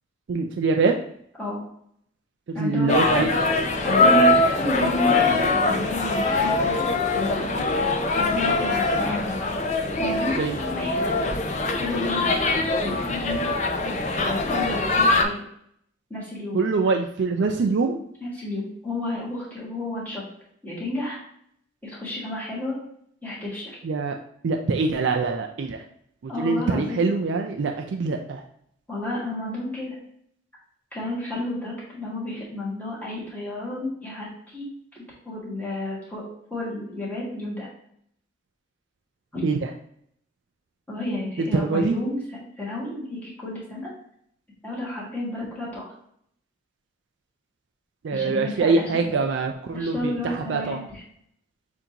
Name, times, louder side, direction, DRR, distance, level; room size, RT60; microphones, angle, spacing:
voice 1, 0.3-1.0 2.5-3.5 10.4-10.6 16.5-18.0 23.8-24.2 24.4-25.8 26.2-28.4 39.4-39.7 41.4-42.0 48.0-50.8, right 4 dB, 60° right, 4 dB, 0.3 m, -24 dB
voice 2, 2.5-2.9 3.8-7.6 8.1-9.4 10.0-11.2 11.8-13.5 13.8-15.4 16.1-16.6 18.2-20.2 20.6-21.2 21.8-22.8 23.2-23.8 26.3-27.0 28.9-30.0 30.9-34.6 34.9-37.7 39.3-39.5 40.9-42.2 42.6-43.9 44.6-45.9 48.1-49.1 49.7-51.0, left 2 dB, 10° left, -7 dB, 1.7 m, -31 dB
sound 1, 2.9-15.2, left 2 dB, 35° left, 0.4 m, -22 dB
6.7 x 2.7 x 2.8 m, 0.68 s
head